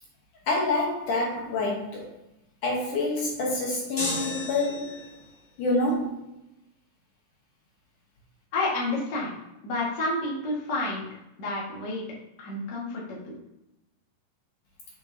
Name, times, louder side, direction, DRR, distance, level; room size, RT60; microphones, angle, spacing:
voice 1, 0.5-2.1 2.6-5.0 5.6-6.2, left 2 dB, 65° left, -2 dB, 2.1 m, -27 dB
sound 1, 4.0-5.3, left 1 dB, 30° left, 1.3 m, -33 dB
voice 2, 8.5-9.3 9.6-11.0 11.4-12.0 12.4-13.3, left 2 dB, 80° left, -5 dB, 0.9 m, -29 dB
6.8 x 6.6 x 2.8 m, 0.88 s
omnidirectional pair, 5.0 m